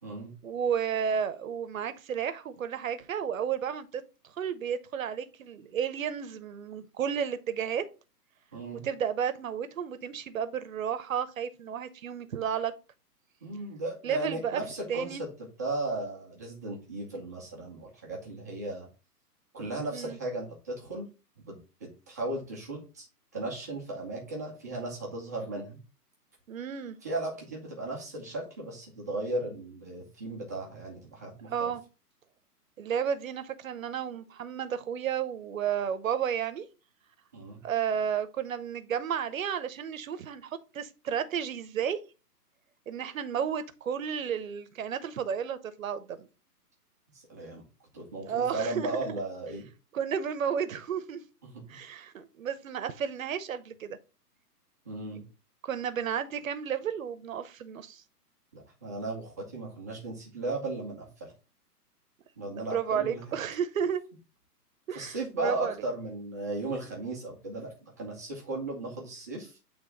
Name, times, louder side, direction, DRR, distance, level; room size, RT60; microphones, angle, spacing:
voice 1, 0.4-4.0 4.4-7.8 8.8-12.7 14.0-14.6 14.9-15.2 19.9-20.2 26.5-27.0 31.5-31.8 32.8-36.7 37.6-42.0 42.9-46.3 48.3-48.9 49.9-51.2 51.7-54.0 55.6-58.0 62.4-64.0 64.9-65.7, right 8 dB, 55° right, 0.8 m, -32 dB
voice 2, 8.5-8.8 13.4-15.3 15.6-18.9 19.5-21.1 21.5-23.1 23.3-25.8 27.0-31.7 37.3-37.6 47.1-47.6 47.9-49.6 51.4-51.8 54.8-55.2 58.5-61.3 62.4-63.4 64.9-69.6, right 2 dB, 10° right, 0.5 m, -36 dB
8.3 x 3.3 x 3.9 m
hypercardioid pair, 155°, 49 cm